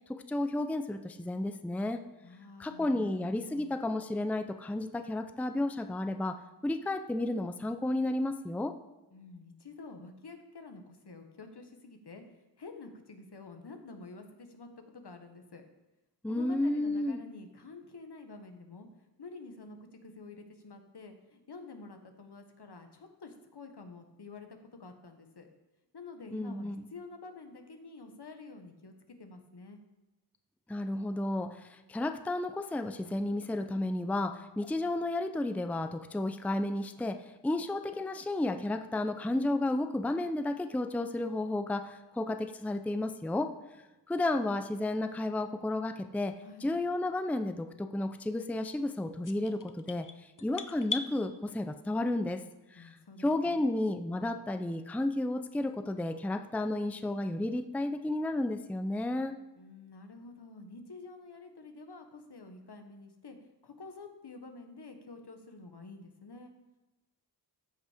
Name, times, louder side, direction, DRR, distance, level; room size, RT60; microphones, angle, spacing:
voice 1, 0.1-2.0 2.6-6.4 6.6-8.7 16.2-17.2 26.3-26.9 30.7-43.5 44.1-46.4 46.6-52.4 52.7-59.3, left 2 dB, 5° left, 8 dB, 0.4 m, -32 dB
voice 2, 2.2-3.8 9.1-12.2 12.6-15.6 16.3-18.9 19.2-25.5 25.9-29.8 46.4-46.7 52.7-53.8 59.6-66.5, left 3 dB, 70° left, 5 dB, 1.3 m, -49 dB
sound 1, 49.2-51.1, left 5 dB, 50° left, 0.6 m, -38 dB
14.5 x 5.4 x 5.0 m, 1.1 s
wide cardioid pair, 70°, 41 cm